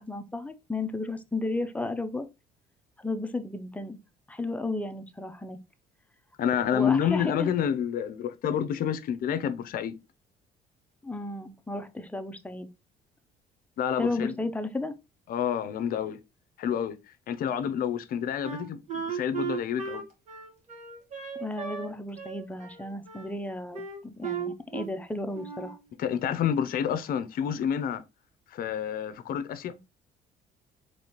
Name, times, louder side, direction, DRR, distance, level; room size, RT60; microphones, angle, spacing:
voice 1, 0.0-2.3 3.0-4.0 4.3-5.6 6.7-7.5 11.0-12.7 13.9-14.9 21.4-25.8, left 2 dB, 10° left, 0.5 m, -33 dB
voice 2, 6.4-9.9 13.8-14.3 15.3-16.2 16.6-17.0 17.3-20.0 26.0-28.0 28.5-29.8, left 8 dB, 60° left, 0.6 m, -28 dB
Wind instrument woodwind instrument, 18.4-21.9 22.2-23.3 23.7-25.0 25.3-25.8, right 6 dB, 45° right, 1.5 m, -36 dB
4.2 x 3.1 x 2.9 m
cardioid pair, 110°, 17 cm